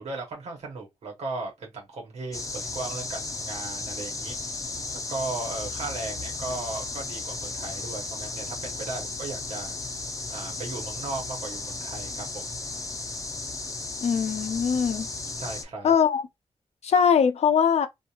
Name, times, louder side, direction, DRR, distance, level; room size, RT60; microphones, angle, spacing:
voice 1, 0.0-4.7 4.9-9.8 10.3-12.5 15.4-15.9, right 3 dB, 90° right, 1.1 m, -36 dB
sound 1, 2.3-15.6, left 3 dB, 30° left, 0.6 m, -35 dB
voice 2, 14.0-15.1 15.8-16.2 16.8-17.9, left 7 dB, 80° left, 0.5 m, -21 dB
2.8 x 2.4 x 2.4 m
cardioid pair, 60°, 11 cm